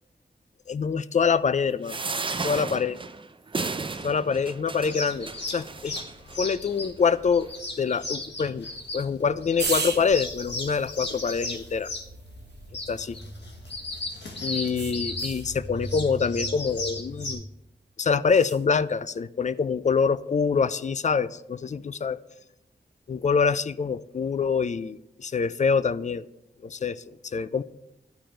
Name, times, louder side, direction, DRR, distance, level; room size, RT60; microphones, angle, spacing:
voice 1, 0.7-2.0 2.4-3.0 4.0-6.0 6.4-7.5 7.8-8.7 8.9-11.9 12.9-13.2 14.4-17.4 18.0-22.2 23.1-26.3 26.6-27.6, left 5 dB, 45° left, 16 dB, 0.4 m, -25 dB
sound 1, 1.8-6.4 7.0-7.1 7.4-7.5, right 4 dB, 30° right, 0.5 m, -34 dB
sound 2, 4.8-17.3, left 2 dB, 85° left, 1.6 m, -36 dB
sound 3, 9.6-14.0 14.8-15.5 18.3-18.6, right 4 dB, 80° right, 1.2 m, -37 dB
12.0 x 4.4 x 5.1 m, 0.87 s
wide cardioid pair, 75°, 17 cm